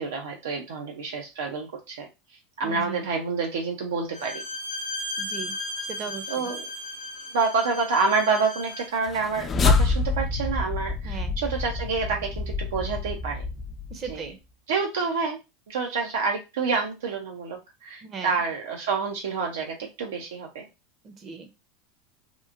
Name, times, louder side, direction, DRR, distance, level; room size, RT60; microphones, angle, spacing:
voice 1, 0.0-4.4 6.3-6.6 7.3-13.4 14.1-14.2 14.7-15.4 15.7-20.7, right 4 dB, 85° right, 1 dB, 0.5 m, -28 dB
voice 2, 2.6-3.1 5.2-5.5 5.8-6.5 11.0-11.4 13.9-14.4 18.0-18.3 21.0-21.5, right 6 dB, 35° right, 7 dB, 0.6 m, -38 dB
Bowed string instrument, 4.1-9.0, left 1 dB, 85° left, 0.8 m, -35 dB
sound 1, 9.0-14.3, left 4 dB, 25° left, 0.4 m, -27 dB
2.9 x 2.4 x 2.4 m, 0.26 s
hypercardioid pair, 105°, 0 cm